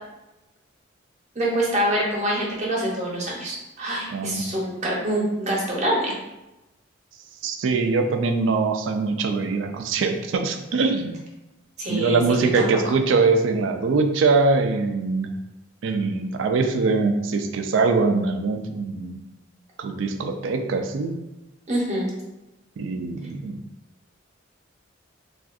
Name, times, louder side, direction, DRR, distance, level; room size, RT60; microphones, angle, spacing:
voice 1, 1.4-6.1 11.8-12.7 21.7-22.1, right 1 dB, 35° right, -3 dB, 0.7 m, -25 dB
voice 2, 4.1-4.4 7.4-11.2 11.9-15.3 15.8-19.2 19.8-21.2 22.8-23.6, right 4 dB, 75° right, 6 dB, 0.3 m, -22 dB
3.5 x 2.4 x 2.4 m, 0.99 s
head